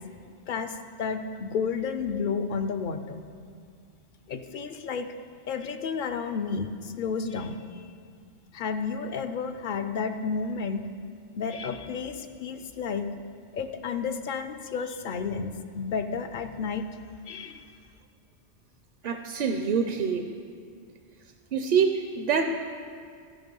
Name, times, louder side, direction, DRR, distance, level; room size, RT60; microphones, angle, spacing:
voice 1, 0.5-3.2 4.3-5.1 5.5-7.9 8.5-10.9 11.4-13.1 13.5-16.9 17.3-17.7, left 5 dB, 55° left, 8 dB, 0.6 m, -31 dB
voice 2, 19.0-20.3 21.5-22.4, right 6 dB, 55° right, 5 dB, 0.6 m, -25 dB
13.5 x 5.6 x 5.3 m, 2.2 s
omnidirectional pair, 1.1 m